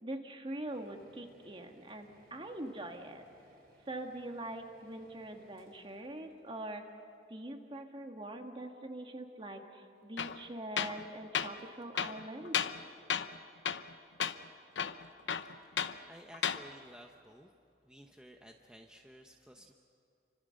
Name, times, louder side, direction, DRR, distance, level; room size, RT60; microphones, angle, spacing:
voice 1, 0.0-3.2 3.9-6.8 7.3-12.6, right 1 dB, 30° right, 4 dB, 1.7 m, -43 dB
sound 1, 0.7-7.6, equal, 60° right, 5.9 m, -65 dB
Tools, 10.2-10.4 10.8-11.0 11.3-11.5 11.9-12.8 13.1-13.4 13.6-13.9 14.2-14.4 14.7-16.0 16.3-16.6, left 7 dB, 75° left, 0.8 m, -34 dB
voice 2, 15.4-15.8 16.1-17.5 17.8-19.7, equal, 5° right, 2 dB, 0.9 m, -55 dB
29.5 x 25.0 x 6.5 m, 2.6 s
head